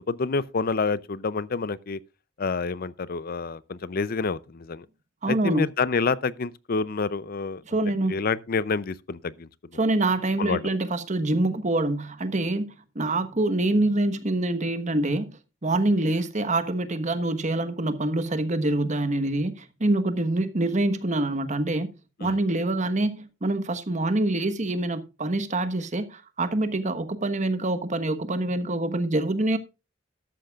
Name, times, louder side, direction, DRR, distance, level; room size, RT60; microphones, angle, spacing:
voice 1, 0.0-2.0 2.4-4.9 5.3-7.6 8.1-9.5 10.4-10.6 22.2-22.4, left 4 dB, 50° left, 0.6 m, -28 dB
voice 2, 5.2-5.6 7.7-8.2 9.8-15.3 15.6-21.9 22.2-29.6, right 2 dB, 40° right, 1.3 m, -25 dB
13.5 x 11.5 x 2.4 m
head